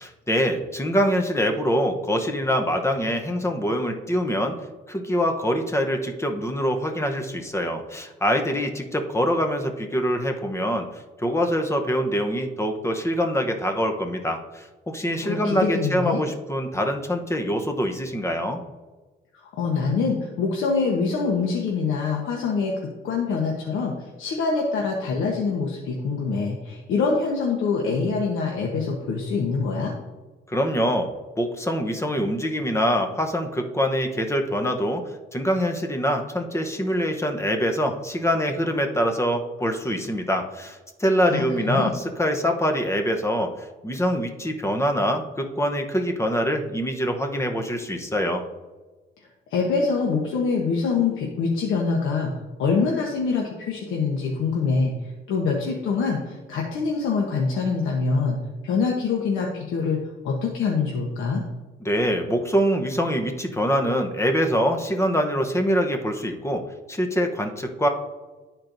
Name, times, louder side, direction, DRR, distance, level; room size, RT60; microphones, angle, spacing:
voice 1, 0.0-4.5 4.9-18.6 30.5-31.1 31.4-35.0 35.3-48.4 61.8-66.6 66.9-67.9, equal, 15° left, 4 dB, 0.8 m, -24 dB
voice 2, 15.2-16.2 19.3-29.9 41.2-41.9 49.2-58.4 58.6-60.0 60.2-61.4, left 4 dB, 80° left, -1 dB, 1.0 m, -25 dB
11.5 x 4.4 x 2.6 m, 1.2 s
cardioid pair, 90°, 20 cm